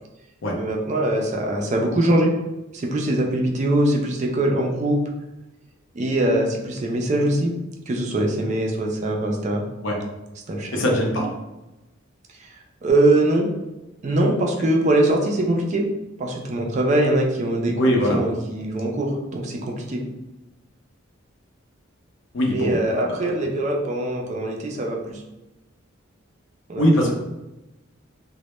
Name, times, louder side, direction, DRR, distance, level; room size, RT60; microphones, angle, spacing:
voice 1, 0.5-2.3 2.7-5.0 5.9-7.5 7.9-9.6 10.5-10.8 12.4-12.5 12.8-13.5 14.0-15.9 16.2-17.7 18.1-20.0 22.5-25.2 26.7-26.9, right 1 dB, 35° right, 1 dB, 0.3 m, -22 dB
voice 2, 10.7-11.3 17.8-18.2 22.3-22.8 23.2-23.3 26.8-27.1, equal, 70° left, -1 dB, 0.6 m, -20 dB
2.1 x 2.1 x 2.9 m, 0.99 s
head